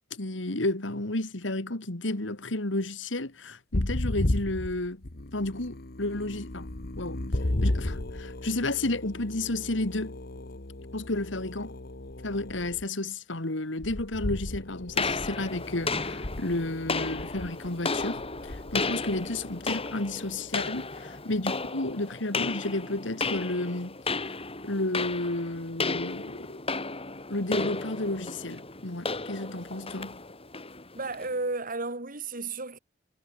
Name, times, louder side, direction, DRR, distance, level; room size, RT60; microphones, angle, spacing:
voice 1, 0.1-5.0 5.3-6.7 7.0-7.2 7.6-10.1 10.9-11.8 12.2-24.0 24.6-26.6 27.3-30.2, left 2 dB, 70° left, 2.3 m, -32 dB
sound 1, 3.7-12.8 13.8-21.4, left 1 dB, 55° left, 1.5 m, -35 dB
sound 2, 15.0-31.3, left 3 dB, 30° left, 6.2 m, -34 dB
voice 2, 30.9-32.8, right 3 dB, 45° right, 5.5 m, -33 dB
head